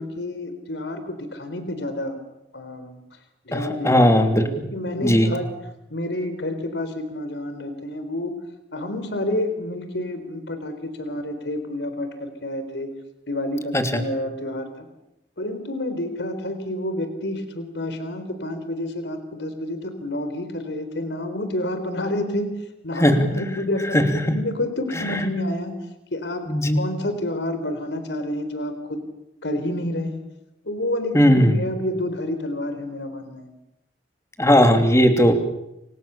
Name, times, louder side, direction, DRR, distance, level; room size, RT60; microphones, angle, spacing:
voice 1, 0.0-2.2 2.5-3.0 3.4-5.5 5.9-8.3 8.7-12.9 13.3-14.9 15.4-22.5 22.8-25.8 26.1-26.4 26.7-29.0 29.4-30.2 30.6-33.5, left 1 dB, 85° left, 9 dB, 3.9 m, -29 dB
voice 2, 3.8-4.4 5.0-5.3 13.7-13.8 23.0-23.1 23.9-24.0 26.5-26.8 31.1-31.6 34.4-35.3, equal, 15° left, 6 dB, 3.0 m, -16 dB
29.0 x 26.0 x 7.0 m, 0.87 s
head